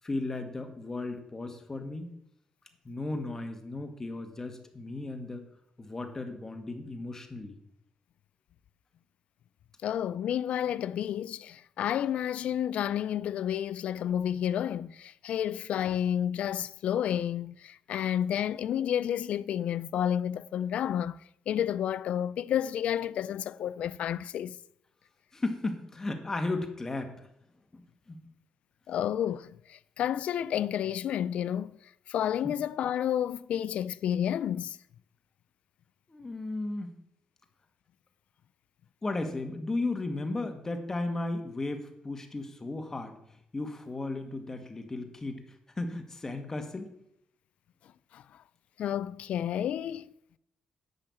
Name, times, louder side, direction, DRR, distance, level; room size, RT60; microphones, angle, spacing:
voice 1, 0.0-2.1 2.8-5.4 5.8-7.6 25.3-27.3 27.7-28.2 36.1-37.0 39.0-43.2 43.5-45.4 45.8-47.0, left 2 dB, 25° left, 1.8 m, -35 dB
voice 2, 9.8-21.2 21.5-24.6 28.9-31.8 32.1-34.8 48.1-48.2 48.8-50.1, left 10 dB, 80° left, 0.4 m, -30 dB
11.0 x 5.7 x 8.6 m
cardioid pair, 110°, 2 cm